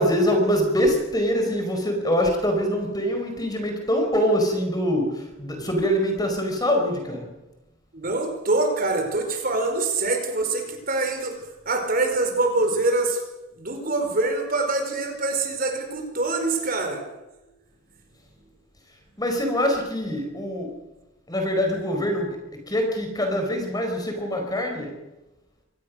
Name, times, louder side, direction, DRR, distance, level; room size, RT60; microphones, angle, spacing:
voice 1, 0.0-7.3 19.2-20.8 21.3-22.4 22.7-24.9, equal, 20° left, 3 dB, 4.8 m, -24 dB
voice 2, 7.9-11.3 11.6-13.2 13.6-17.0, right 2 dB, 45° right, 4 dB, 4.8 m, -24 dB
25.5 x 18.5 x 6.5 m, 1.0 s
head